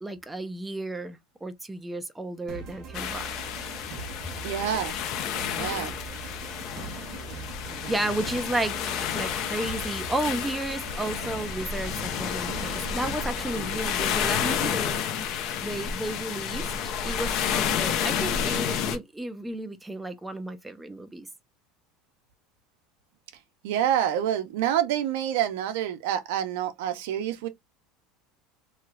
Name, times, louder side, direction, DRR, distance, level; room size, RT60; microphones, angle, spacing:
voice 1, 0.0-3.3 7.9-8.7 9.1-15.0 15.6-16.7 17.0-21.3, right 1 dB, 5° right, 0.4 m, -33 dB
sound 1, 2.5-13.9, right 5 dB, 45° right, 0.9 m, -41 dB
sound 2, 2.9-19.0, left 8 dB, 50° left, 0.6 m, -30 dB
voice 2, 4.4-4.9 5.6-5.9 23.6-27.5, right 10 dB, 80° right, 0.7 m, -27 dB
3.1 x 2.9 x 2.4 m
supercardioid pair, 140°, 0 cm